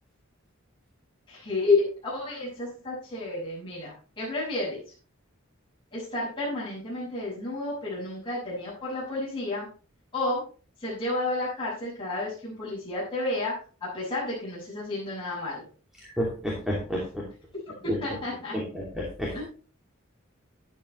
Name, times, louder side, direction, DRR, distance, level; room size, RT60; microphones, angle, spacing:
voice 1, 1.3-4.8 5.9-9.7 10.1-10.4 10.8-15.7 17.8-18.6 19.3-19.4, left 2 dB, 25° left, -8 dB, 6.3 m, -31 dB
voice 2, 16.2-17.2 17.9-18.0 18.5-19.3, equal, ahead, -3 dB, 2.7 m, -30 dB
12.5 x 11.0 x 3.2 m, 0.37 s
head